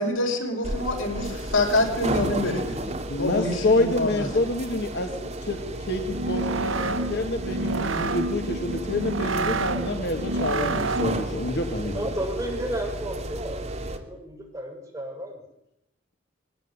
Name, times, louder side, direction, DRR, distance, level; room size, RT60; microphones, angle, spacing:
voice 1, 0.0-4.3, left 2 dB, 85° left, 3 dB, 5.9 m, -26 dB
sound 1, 0.6-14.0, right 1 dB, 35° right, 2.8 m, -33 dB
voice 2, 3.1-12.0, left 2 dB, 60° left, 4 dB, 2.3 m, -27 dB
sound 2, 6.1-11.4, right 3 dB, 80° right, 1.2 m, -29 dB
voice 3, 11.9-13.6 13.9-15.4, right 1 dB, 15° right, 1 dB, 6.8 m, -32 dB
22.5 x 18.5 x 10.0 m, 0.82 s
head